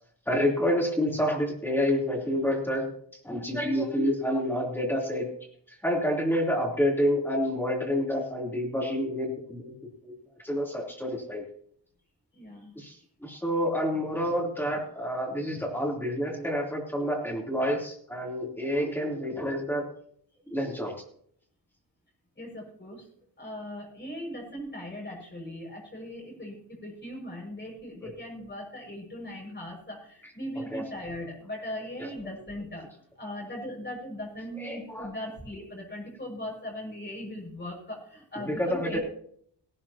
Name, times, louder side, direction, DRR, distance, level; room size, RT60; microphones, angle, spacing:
voice 1, 0.3-2.9 3.2-5.3 5.8-9.7 10.0-10.1 10.4-11.4 12.7-19.9 20.5-20.9 28.0-28.1 30.5-30.8 32.0-32.1 34.6-35.1 38.3-39.0, equal, 5° left, -2 dB, 3.4 m, -28 dB
voice 2, 12.3-12.7 22.4-23.1 23.4-32.9 33.2-39.0, left 1 dB, 25° left, -1 dB, 6.1 m, -39 dB
17.5 x 12.5 x 2.9 m, 0.63 s
wide cardioid pair, 175°, 42 cm